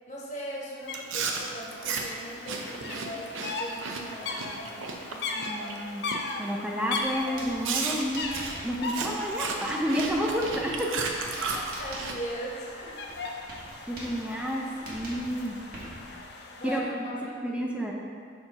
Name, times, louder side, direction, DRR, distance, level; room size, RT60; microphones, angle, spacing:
voice 1, 0.1-5.2 11.3-13.0 16.6-17.4, equal, 40° left, -4 dB, 1.0 m, -39 dB
sound 1, 0.9-1.0 1.3-16.8, left 3 dB, 55° left, 0.5 m, -39 dB
Chewing mastication, 0.9-5.8 6.1-6.4 6.9-7.0 7.6-12.1, right 4 dB, 85° right, 0.6 m, -34 dB
voice 2, 5.4-6.0 6.4-8.3 8.6-10.9 13.9-15.6 16.6-16.8 17.2-17.9, equal, 5° right, -2 dB, 0.5 m, -30 dB
Writing, 7.0-16.3, right 1 dB, 45° right, 1.2 m, -45 dB
6.8 x 2.9 x 5.6 m, 2.3 s
head